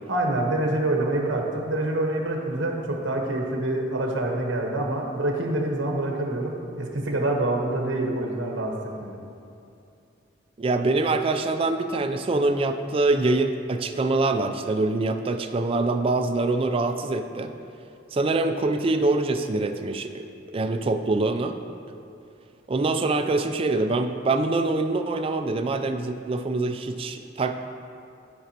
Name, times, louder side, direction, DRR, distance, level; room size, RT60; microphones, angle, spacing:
voice 1, 0.1-9.1, right 1 dB, 80° right, 1 dB, 1.1 m, -26 dB
voice 2, 10.6-17.5 18.1-20.3 20.5-21.6 22.7-27.6, right 2 dB, 30° right, 6 dB, 0.4 m, -24 dB
12.5 x 5.0 x 2.9 m, 2.6 s
head